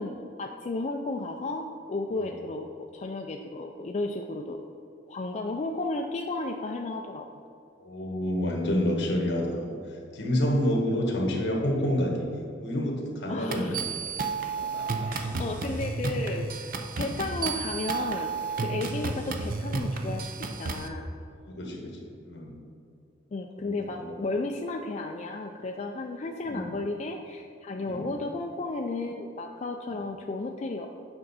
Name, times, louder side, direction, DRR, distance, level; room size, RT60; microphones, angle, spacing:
voice 1, 0.0-4.7 5.1-7.3 13.3-13.8 15.1-21.1 23.3-30.9, left 2 dB, 35° left, 2 dB, 0.4 m, -33 dB
voice 2, 7.8-9.7 10.1-12.3 12.6-13.8 14.5-15.1 17.0-17.1 18.7-18.8 21.5-22.0 22.2-22.5 23.6-24.2 26.5-26.7 27.8-28.1, equal, 65° left, 1 dB, 1.4 m, -28 dB
sound 1, 13.5-20.9, right 4 dB, 50° right, 0.6 m, -32 dB
9.0 x 5.4 x 4.1 m, 2.5 s
head